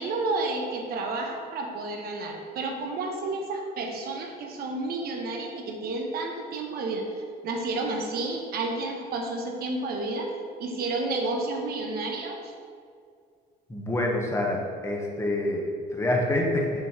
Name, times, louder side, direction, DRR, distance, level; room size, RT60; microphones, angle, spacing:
voice 1, 0.0-7.1 7.4-10.3 10.6-12.4, right 2 dB, 65° right, 1 dB, 1.2 m, -31 dB
voice 2, 13.7-16.7, left 1 dB, 15° left, 0 dB, 1.2 m, -27 dB
7.0 x 3.1 x 5.8 m, 2.1 s
cardioid pair, 110°, 17 cm